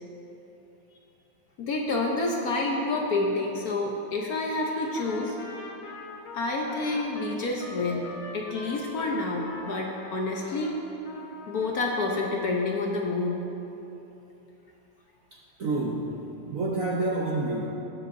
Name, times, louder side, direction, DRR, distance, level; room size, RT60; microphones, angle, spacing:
voice 1, 1.6-5.3 6.3-10.8 11.5-13.4, left 2 dB, 60° left, 0 dB, 1.0 m, -28 dB
Trumpet, 4.5-10.7 11.0-11.8, left 3 dB, 80° left, 1.9 m, -43 dB
voice 2, 15.3-16.2 16.5-17.7, right 2 dB, 65° right, -2 dB, 0.8 m, -28 dB
19.5 x 7.4 x 2.6 m, 3.0 s
omnidirectional pair, 2.2 m